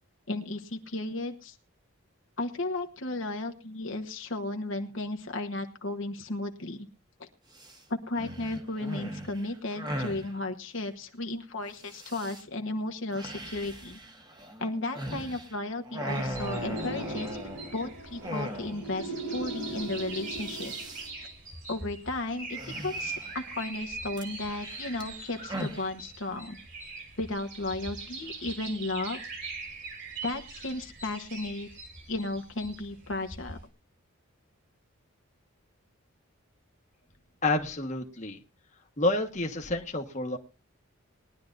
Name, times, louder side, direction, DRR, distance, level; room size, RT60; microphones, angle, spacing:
voice 1, 0.3-1.6 2.4-6.9 7.2-7.3 7.9-14.0 14.6-17.4 17.7-20.7 21.7-26.6 27.2-29.2 30.2-31.7 32.1-33.6, left 2 dB, 55° left, 5 dB, 1.1 m, -34 dB
sound 1, 7.5-7.8 8.1-10.3 11.8-12.4 13.1-15.6 15.9-17.8 18.2-19.0 19.3-19.4 19.6-19.9 20.2-21.1 22.6-23.5 24.2-25.9, equal, 20° right, 1.2 m, -39 dB
sound 2, 16.1-33.7, right 3 dB, 50° right, 3.6 m, -42 dB
sound 3, 16.5-21.2, right 2 dB, 85° right, 5.7 m, -39 dB
voice 2, 37.4-38.4 39.0-40.4, left 2 dB, 30° left, 3 dB, 1.2 m, -29 dB
21.0 x 11.5 x 2.6 m, 0.29 s
head